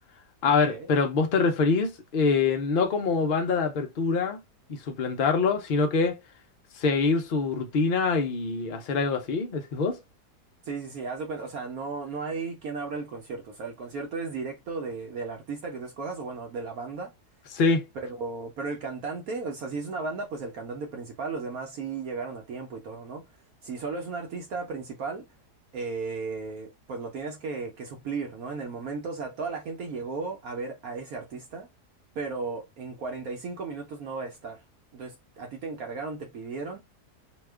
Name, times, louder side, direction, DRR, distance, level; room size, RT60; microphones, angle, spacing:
voice 1, 0.4-4.4 4.7-6.2 6.8-10.0 17.5-17.9, left 4 dB, 60° left, 0.5 m, -25 dB
voice 2, 10.6-17.1 17.9-23.2 23.6-25.2 25.7-31.7 32.2-34.6 34.9-36.8, right 4 dB, 65° right, 1.1 m, -35 dB
2.8 x 2.3 x 3.3 m
omnidirectional pair, 1.7 m